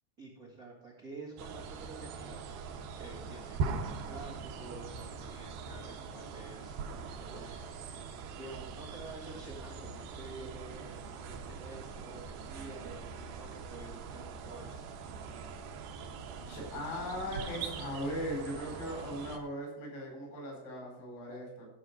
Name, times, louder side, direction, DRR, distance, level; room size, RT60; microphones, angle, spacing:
voice 1, 0.2-7.9 8.4-14.9, right 3 dB, 90° right, -4 dB, 0.7 m, -49 dB
sound 1, 1.4-19.4, right 5 dB, 70° right, 2.5 m, -42 dB
voice 2, 16.5-21.7, equal, 80° left, -1 dB, 6.8 m, -39 dB
14.0 x 6.5 x 4.8 m, 0.82 s
omnidirectional pair, 5.1 m